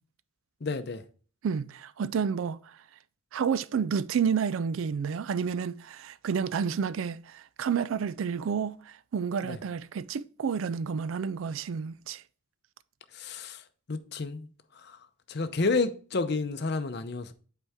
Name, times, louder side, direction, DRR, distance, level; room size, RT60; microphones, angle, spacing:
voice 1, 0.6-1.0 9.4-9.6 13.1-13.6 13.9-14.5 14.8-15.0 15.3-17.3, left 3 dB, 50° left, 0.6 m, -30 dB
voice 2, 1.4-2.6 3.3-12.2, right 6 dB, 75° right, 0.4 m, -30 dB
8.1 x 4.5 x 3.5 m
head